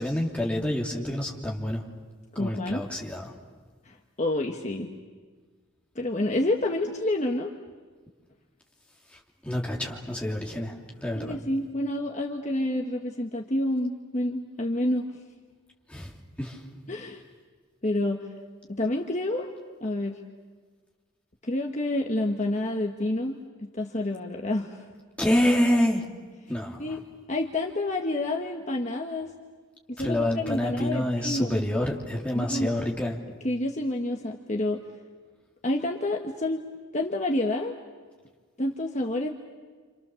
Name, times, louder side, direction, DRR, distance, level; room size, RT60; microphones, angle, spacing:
voice 1, 0.0-1.8 2.3-3.4 9.4-11.4 15.9-16.1 16.4-16.6 25.2-26.1 26.5-27.0 30.0-33.2, left 1 dB, 5° left, -1 dB, 3.0 m, -27 dB
voice 2, 2.3-2.8 3.8-4.9 5.9-7.5 11.1-15.1 16.9-17.2 17.8-18.3 18.7-19.5 19.8-20.2 21.4-24.8 26.8-27.0 27.3-29.3 30.0-31.6 32.3-32.7 33.4-34.8 35.6-36.6 36.9-37.7 38.6-39.3, left 1 dB, 35° left, 1 dB, 1.3 m, -28 dB
29.5 x 27.0 x 7.1 m, 1.5 s
head